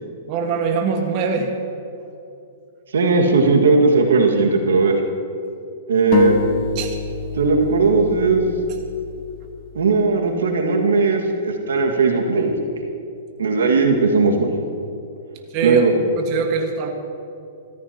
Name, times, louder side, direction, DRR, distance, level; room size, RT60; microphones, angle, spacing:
voice 1, 0.3-1.5 6.7-7.0 15.5-16.9, right 5 dB, 45° right, 3 dB, 1.6 m, -23 dB
voice 2, 2.9-5.0 5.9-6.4 7.3-8.5 9.7-12.5 13.4-14.5 15.6-15.9, right 4 dB, 85° right, 2 dB, 1.8 m, -17 dB
sound 1, 6.1-9.7, left 7 dB, 45° left, 1.0 m, -27 dB
23.5 x 14.5 x 2.9 m, 2.6 s
hypercardioid pair, 130°, 0 cm